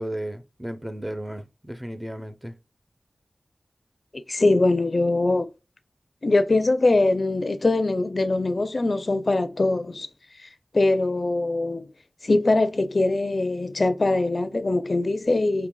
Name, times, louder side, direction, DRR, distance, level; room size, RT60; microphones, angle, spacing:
voice 1, 0.0-2.6, right 1 dB, 15° right, 0.6 m, -34 dB
voice 2, 4.3-5.5 6.2-10.1 10.4-10.5 10.7-11.9 12.2-15.7, left 2 dB, 55° left, 0.4 m, -22 dB
5.1 x 2.8 x 2.3 m
wide cardioid pair, 60°, 0 cm